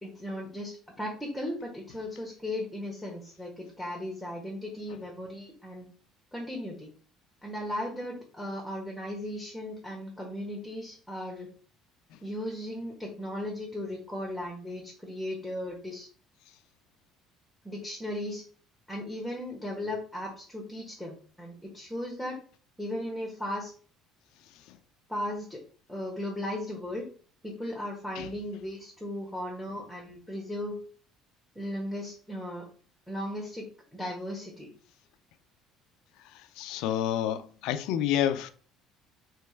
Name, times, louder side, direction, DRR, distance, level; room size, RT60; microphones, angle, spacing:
voice 1, 0.0-5.9 6.3-6.9 7.4-11.5 12.2-16.1 17.6-18.4 18.9-22.4 22.8-23.7 25.1-25.6 25.9-27.1 27.4-30.8 31.5-32.7 33.1-34.7, left 1 dB, ahead, 1.2 m, -36 dB
voice 2, 36.3-38.5, left 10 dB, 80° left, 0.4 m, -29 dB
3.4 x 3.1 x 4.4 m
cardioid pair, 120°, 0 cm